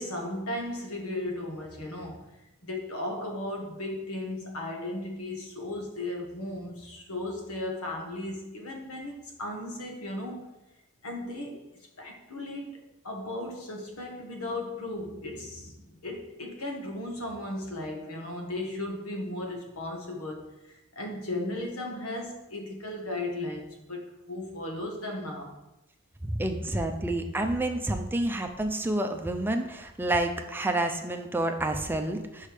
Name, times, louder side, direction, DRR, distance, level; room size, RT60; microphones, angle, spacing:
voice 1, 0.0-2.3 2.6-10.5 11.0-11.6 12.0-20.5 20.9-25.5, left 1 dB, 85° left, 1 dB, 1.4 m, -36 dB
voice 2, 26.2-32.5, right 1 dB, 10° right, 4 dB, 0.5 m, -29 dB
5.5 x 5.0 x 5.1 m, 0.98 s
head